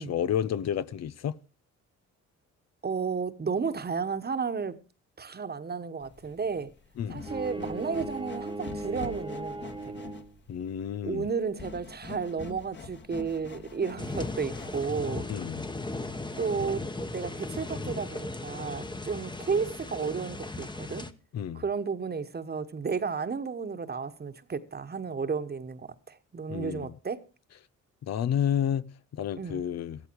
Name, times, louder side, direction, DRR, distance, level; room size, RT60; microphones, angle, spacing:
voice 1, 0.0-1.4 7.0-7.2 10.5-11.3 15.3-15.6 21.3-21.6 26.5-26.9 28.0-30.0, left 9 dB, 60° left, 0.8 m, -30 dB
voice 2, 2.8-4.8 5.2-6.7 7.1-9.9 11.0-15.3 16.4-21.1 21.5-27.2 29.4-29.6, right 5 dB, 35° right, 1.4 m, -33 dB
sound 1, 6.0-15.0, left 4 dB, 35° left, 1.7 m, -44 dB
Bowed string instrument, 7.2-10.5, right 2 dB, 15° right, 1.4 m, -38 dB
sound 2, 14.0-21.1, left 2 dB, 15° left, 1.2 m, -37 dB
15.0 x 13.0 x 4.7 m
cardioid pair, 90°, 30 cm